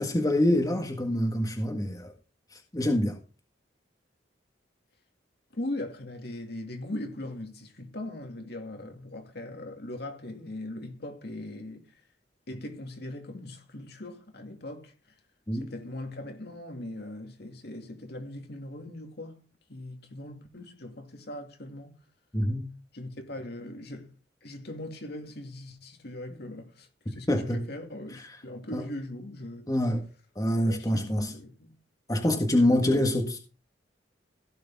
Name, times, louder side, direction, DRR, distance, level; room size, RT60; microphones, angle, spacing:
voice 1, 0.0-2.1 2.5-3.2 15.5-15.6 22.3-22.7 27.3-27.6 28.7-28.8 29.7-30.0 30.3-31.3 32.1-33.4, left 1 dB, 20° left, 1.6 m, -25 dB
voice 2, 5.5-12.0 12.5-15.2 15.5-19.4 19.7-22.0 22.9-24.1 24.4-29.9 30.6-31.8 32.6-33.1, left 1 dB, 65° left, 2.4 m, -40 dB
16.0 x 6.7 x 3.6 m
head